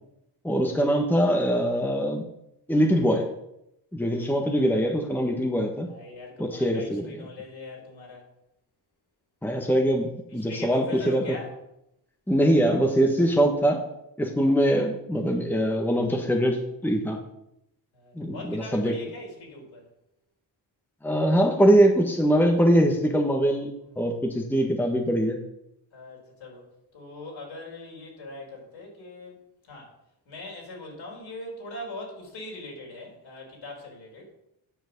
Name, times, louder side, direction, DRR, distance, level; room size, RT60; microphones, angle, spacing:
voice 1, 0.4-2.2 2.7-3.3 3.9-5.9 6.4-7.1 9.4-11.4 12.3-13.9 14.2-17.2 18.1-18.9 21.0-25.4, equal, 5° left, 2 dB, 1.4 m, -23 dB
voice 2, 5.9-8.3 10.3-11.5 17.9-19.9 23.9-24.1 25.9-26.7 26.9-29.4 29.7-29.9 30.3-34.3, left 2 dB, 65° left, -1 dB, 4.2 m, -41 dB
9.3 x 6.1 x 5.4 m, 0.82 s
supercardioid pair, 60°, 49 cm